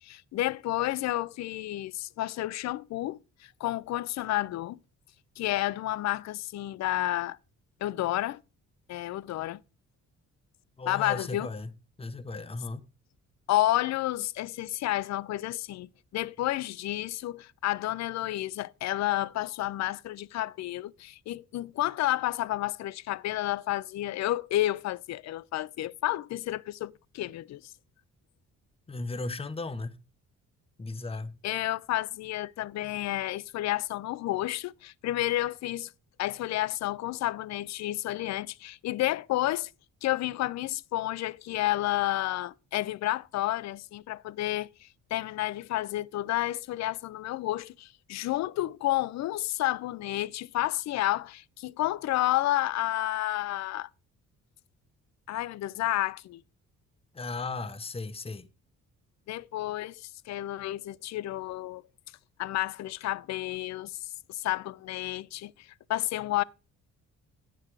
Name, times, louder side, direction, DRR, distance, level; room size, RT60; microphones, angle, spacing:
voice 1, 0.0-4.8 5.4-7.4 7.8-8.4 8.9-9.6 10.9-11.5 13.5-27.7 31.4-35.9 36.2-39.7 40.0-53.9 55.3-56.4 59.3-61.8 62.4-66.4, left 15 dB, 65° left, 0.5 m, -31 dB
voice 2, 10.8-11.7 12.0-12.8 28.9-30.0 30.8-31.4 57.1-58.5, left 3 dB, 20° left, 0.8 m, -36 dB
8.5 x 6.9 x 4.6 m
cardioid pair, 90°, 30 cm